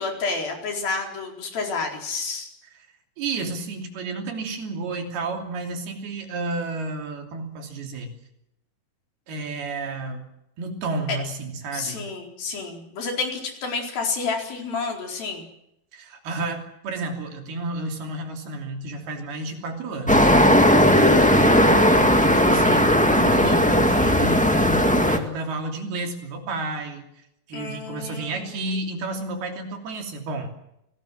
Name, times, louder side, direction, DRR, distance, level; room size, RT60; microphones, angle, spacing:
voice 1, 0.0-2.5 11.7-15.4 27.5-28.7, left 4 dB, 70° left, 2 dB, 6.1 m, -30 dB
voice 2, 3.2-8.1 9.3-10.2 10.6-12.1 15.9-20.4 22.0-27.1 27.5-30.5, right 2 dB, 85° right, 3 dB, 5.0 m, -31 dB
sound 1, 20.1-25.2, equal, 10° left, 0.3 m, -17 dB
28.0 x 19.5 x 7.6 m, 0.81 s
omnidirectional pair, 4.4 m